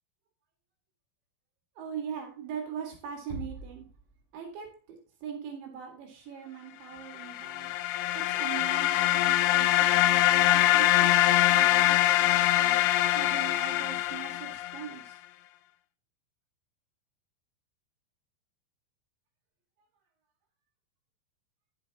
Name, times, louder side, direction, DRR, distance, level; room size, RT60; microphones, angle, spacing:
voice 1, 1.8-3.9 4.3-7.7 8.1-12.8 13.2-15.2, right 8 dB, 80° right, 1 dB, 4.3 m, -41 dB
Bass drum, 3.3-4.7, right 1 dB, 50° right, 4.5 m, -43 dB
sound 1, 7.2-14.9, left 14 dB, 80° left, 2.3 m, -24 dB
12.5 x 8.2 x 2.9 m, 0.39 s
omnidirectional pair, 5.1 m